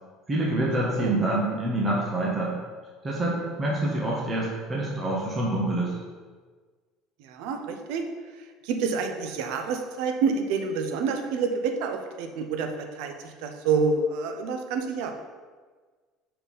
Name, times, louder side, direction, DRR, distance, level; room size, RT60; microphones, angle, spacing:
voice 1, 0.3-2.5 3.0-5.9, right 1 dB, 25° right, -4 dB, 1.4 m, -26 dB
voice 2, 7.2-8.1 8.6-15.1, right 5 dB, 75° right, 5 dB, 0.8 m, -28 dB
5.5 x 4.3 x 5.5 m, 1.4 s
supercardioid pair, 115°, 0 cm